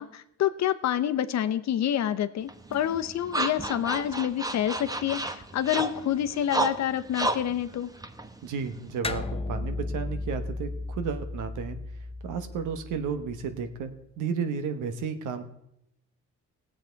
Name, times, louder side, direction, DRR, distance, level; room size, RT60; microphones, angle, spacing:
voice 1, 0.0-7.9, left 10 dB, 65° left, 11 dB, 0.8 m, -28 dB
sound 1, 2.5-9.0, right 2 dB, 10° right, 1.0 m, -33 dB
voice 2, 8.4-11.8 12.2-15.5, right 6 dB, 85° right, 9 dB, 1.3 m, -33 dB
sound 2, 9.0-13.8, left 2 dB, 20° left, 0.7 m, -35 dB
18.0 x 7.7 x 4.5 m, 0.79 s
cardioid pair, 90°, 30 cm